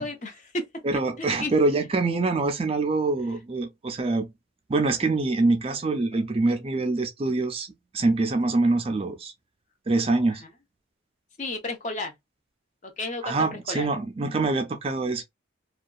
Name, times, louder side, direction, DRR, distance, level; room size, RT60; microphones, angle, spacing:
voice 1, 0.0-0.7 1.2-1.9 6.1-6.2 10.4-10.5 11.4-12.1 12.8-13.9, left 2 dB, 35° left, 0.6 m, -33 dB
voice 2, 0.8-4.3 4.7-9.3 9.9-10.4 13.2-15.2, right 3 dB, 30° right, 0.4 m, -25 dB
2.6 x 2.2 x 2.3 m
head